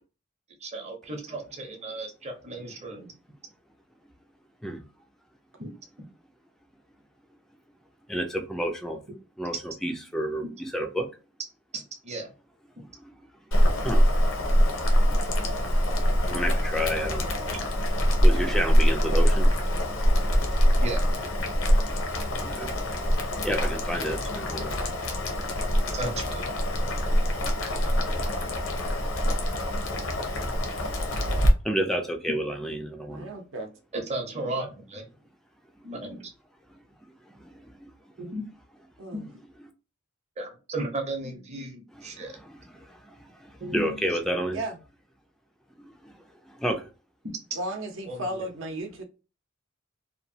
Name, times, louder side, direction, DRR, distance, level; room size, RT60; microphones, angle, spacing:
voice 1, 0.6-3.1 5.6-5.7 11.7-12.3 17.5-17.6 20.8-21.0 25.9-26.5 34.1-35.0 35.8-36.3 38.2-38.4 39.1-39.2 40.4-42.3 43.6-44.0 48.1-48.4, right 2 dB, 35° right, 0.8 m, -35 dB
voice 2, 8.1-9.0 9.4-11.1 12.9-13.1 13.6-14.1 16.2-17.3 18.2-19.5 21.9-22.0 22.3-22.8 23.2-24.7 27.5-27.6 31.6-33.3 37.3-37.9 41.9-44.6 46.0-46.9, equal, ahead, 0.4 m, -31 dB
Boiling, 13.5-31.5, equal, 75° left, 0.7 m, -24 dB
voice 3, 33.1-33.7 39.0-39.3 44.5-44.8 47.6-49.0, right 1 dB, 70° right, 0.8 m, -34 dB
2.9 x 2.2 x 2.7 m
head